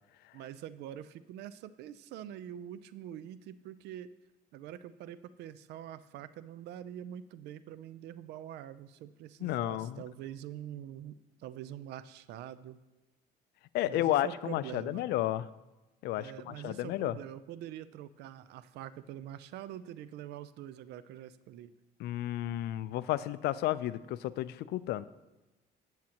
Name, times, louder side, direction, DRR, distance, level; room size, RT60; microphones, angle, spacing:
voice 1, 0.3-4.1 4.5-12.8 13.9-15.1 16.1-21.7, right 11 dB, 80° right, 15 dB, 0.5 m, -45 dB
voice 2, 9.4-10.0 13.7-15.4 16.0-17.2 22.0-25.0, left 14 dB, 75° left, 16 dB, 0.4 m, -32 dB
15.5 x 7.3 x 2.9 m, 1.1 s
cardioid pair, 110°, 17 cm